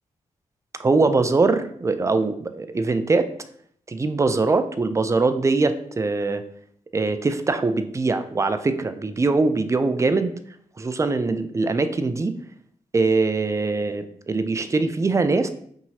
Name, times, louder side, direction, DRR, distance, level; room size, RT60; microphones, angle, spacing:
voice 1, 0.8-3.3 3.9-6.4 6.9-10.3 10.8-12.4 12.9-15.5, right 3 dB, 20° right, 10 dB, 0.3 m, -22 dB
2.7 x 2.7 x 2.8 m, 0.63 s
supercardioid pair, 40°, 15 cm